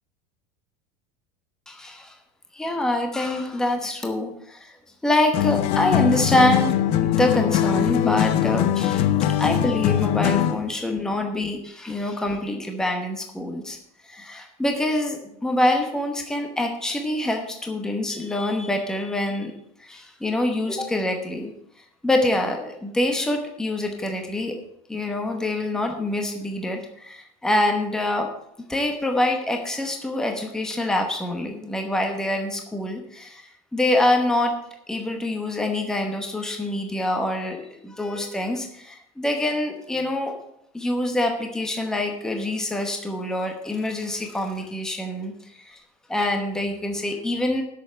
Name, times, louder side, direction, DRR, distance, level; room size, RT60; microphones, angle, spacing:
voice 1, 1.7-2.1 2.5-4.7 5.0-6.7 7.0-9.1 9.4-13.8 14.1-19.5 19.8-21.5 22.0-24.5 24.9-28.3 28.7-34.5 34.9-37.6 37.8-40.3 40.7-45.3 45.7-45.8 46.1-47.6, left 1 dB, 5° left, 3 dB, 1.0 m, -25 dB
sound 1, 5.3-10.7, left 11 dB, 40° left, 0.6 m, -21 dB
7.9 x 6.7 x 7.9 m, 0.73 s
cardioid pair, 175°, 15 cm